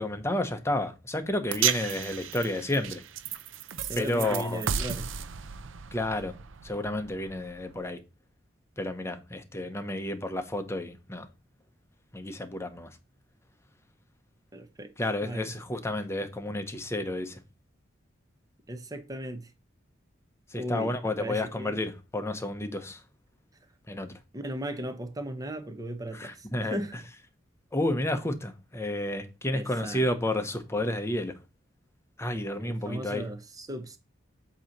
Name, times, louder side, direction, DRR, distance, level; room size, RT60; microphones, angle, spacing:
voice 1, 0.0-3.0 4.0-4.6 5.9-6.3 6.6-8.0 8.8-11.3 12.1-13.0 15.0-17.4 20.5-23.0 23.9-24.1 26.1-26.8 27.7-31.3 32.2-33.2, left 1 dB, 15° left, 0.8 m, -31 dB
sound 1, 1.5-7.9, right 9 dB, 90° right, 0.6 m, -34 dB
voice 2, 3.9-5.1 14.5-14.9 15.2-15.5 18.7-19.5 20.6-21.8 24.3-26.9 29.5-30.1 32.6-34.0, right 1 dB, 20° right, 0.8 m, -36 dB
7.9 x 2.9 x 5.8 m
head